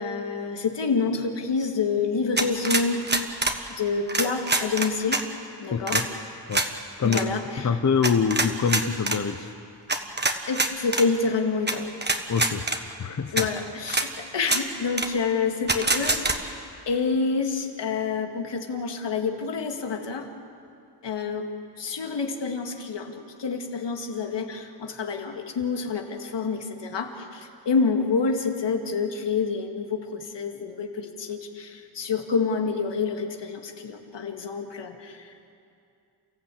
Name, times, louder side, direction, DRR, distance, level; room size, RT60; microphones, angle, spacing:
voice 1, 0.0-3.0 3.8-5.2 5.6-6.0 7.0-7.7 10.5-11.9 13.3-20.3 21.0-21.5 21.8-35.5, left 4 dB, 75° left, 3 dB, 2.1 m, -28 dB
sound 1, 2.4-3.6 4.1-5.2 5.9-6.1 6.5-6.7 7.1-7.2 8.0-9.2 9.9-11.1 11.7-11.8 12.0-12.8 13.4-13.5 13.9-14.1 14.4-14.6 15.0-15.1 15.7-16.4, right 3 dB, 25° right, 1.4 m, -25 dB
voice 2, 5.7-6.1 6.5-6.7 7.0-7.3 7.6-9.5 12.3-13.5, left 6 dB, 40° left, 7 dB, 0.9 m, -25 dB
29.5 x 15.0 x 8.5 m, 2.5 s
wide cardioid pair, 130°, 43 cm